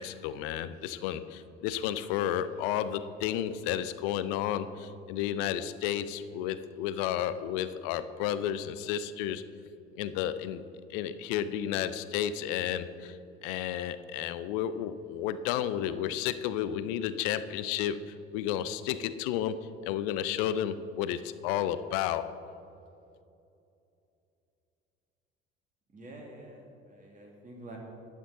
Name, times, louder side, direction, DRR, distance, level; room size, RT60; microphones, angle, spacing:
voice 1, 0.0-9.4 10.0-10.6 10.9-13.2 13.4-22.4, left 10 dB, 60° left, 13 dB, 0.5 m, -32 dB
voice 2, 25.9-27.8, right 1 dB, 25° right, -1 dB, 2.4 m, -48 dB
10.5 x 8.8 x 4.0 m, 2.6 s
figure-of-eight pair, 55°, 31 cm